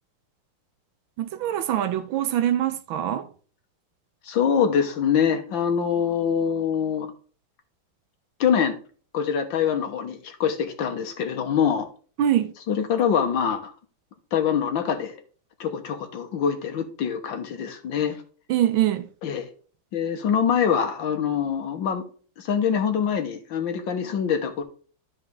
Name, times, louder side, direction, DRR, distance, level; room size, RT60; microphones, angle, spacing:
voice 1, 1.2-3.3 12.2-12.5 18.5-19.1, right 11 dB, 80° right, 1.5 m, -24 dB
voice 2, 4.3-7.1 8.4-8.8 9.1-11.9 12.7-13.7 14.3-15.1 15.6-18.2 19.2-19.5 19.9-22.0 22.4-24.6, left 7 dB, 70° left, 1.8 m, -24 dB
12.5 x 4.8 x 3.3 m
omnidirectional pair, 2.2 m